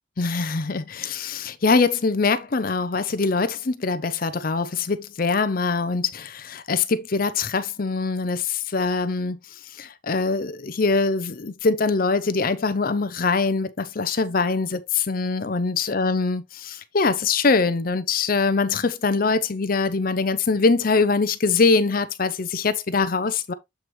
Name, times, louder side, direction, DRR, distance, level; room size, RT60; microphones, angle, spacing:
voice 1, 0.2-23.5, left 4 dB, 45° left, 0.6 m, -23 dB
7.7 x 4.6 x 3.2 m
head